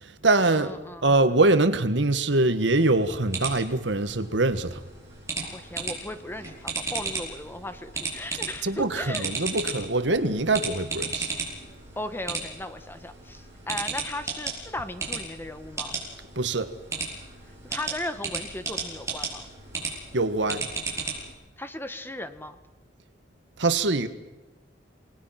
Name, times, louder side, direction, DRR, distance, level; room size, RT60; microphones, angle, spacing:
voice 1, 0.0-0.8 1.0-4.8 8.6-11.3 16.3-16.7 20.1-20.7 23.6-24.1, right 2 dB, 75° right, 1.6 m, -23 dB
voice 2, 0.5-1.1 5.5-9.6 12.0-16.0 17.5-19.5 21.6-22.6, left 1 dB, 10° left, 1.4 m, -37 dB
sound 1, 2.9-21.3, right 4 dB, 15° right, 6.8 m, -35 dB
28.5 x 19.5 x 5.9 m
head